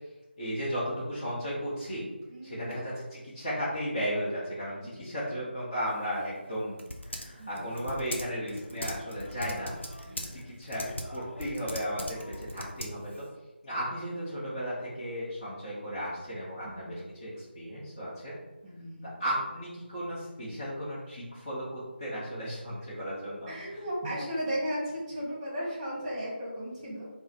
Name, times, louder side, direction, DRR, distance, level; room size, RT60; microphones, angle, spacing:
voice 1, 0.4-2.0 2.4-6.8 7.0-10.9 11.1-13.2 13.6-18.3 19.2-23.5, equal, 25° left, -10 dB, 0.9 m, -35 dB
voice 2, 2.3-2.8 5.0-5.3 7.4-7.9 10.0-10.4 16.6-17.0 18.6-19.2 23.5-27.1, equal, 15° right, -7 dB, 1.2 m, -36 dB
Typing, 5.9-13.3, left 1 dB, 85° left, 0.7 m, -41 dB
3.5 x 2.1 x 4.1 m, 1.1 s
figure-of-eight pair, 160°, 6 cm